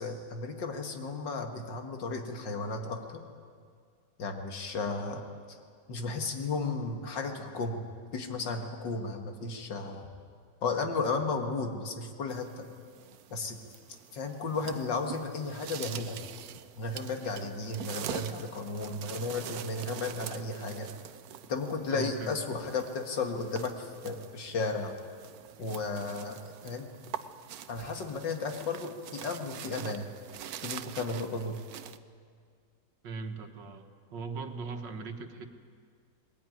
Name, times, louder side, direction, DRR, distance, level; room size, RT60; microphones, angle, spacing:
voice 1, 0.0-3.0 4.2-5.2 5.9-10.1 10.6-12.6 13.3-13.6 14.1-16.2 16.8-20.9 21.5-25.0 25.6-26.9 27.7-30.1 30.6-31.6, left 3 dB, 85° left, 4 dB, 2.5 m, -34 dB
sound 1, 12.3-32.0, right 10 dB, 65° right, 1.1 m, -44 dB
voice 2, 21.9-22.4 33.0-35.5, right 4 dB, 85° right, 6 dB, 2.0 m, -39 dB
20.0 x 18.5 x 9.4 m, 2.1 s
omnidirectional pair, 1.9 m